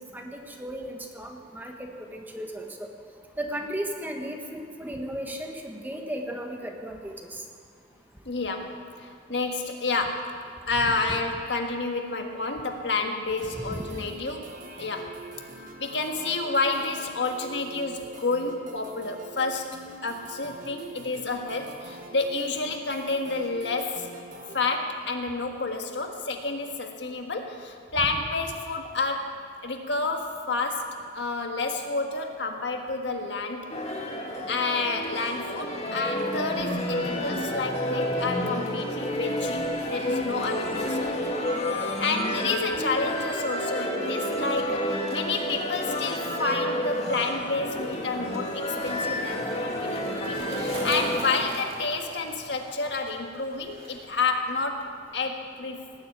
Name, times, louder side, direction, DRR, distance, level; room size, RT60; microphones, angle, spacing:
voice 1, 0.1-2.9 3.4-7.1 13.7-13.8, equal, 10° right, 2 dB, 1.3 m, -35 dB
voice 2, 8.2-10.4 10.7-15.2 15.8-24.1 24.5-33.8 34.5-55.9, left 3 dB, 70° left, 3 dB, 1.6 m, -30 dB
sound 1, 13.4-24.7, right 2 dB, 45° right, 1.5 m, -44 dB
sound 2, 33.7-51.4, left 1 dB, 35° left, 2.0 m, -30 dB
Skateboard, 47.0-54.3 54.5-55.1, right 1 dB, 30° right, 2.7 m, -42 dB
18.5 x 8.0 x 9.0 m, 2.2 s
head